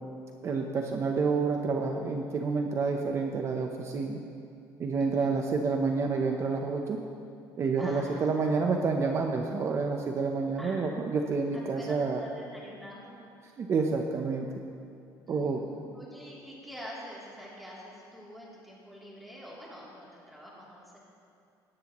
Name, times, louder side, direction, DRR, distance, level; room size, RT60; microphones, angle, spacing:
voice 1, 0.4-4.2 4.8-7.0 7.6-12.2 13.6-14.5 15.3-15.6, right 4 dB, 35° right, 3 dB, 0.8 m, -29 dB
voice 2, 5.0-5.4 7.8-8.7 10.6-10.9 11.5-13.2 15.3-21.0, equal, ahead, -6 dB, 3.1 m, -46 dB
18.5 x 13.0 x 3.1 m, 2.5 s
cardioid pair, 145°, 8 cm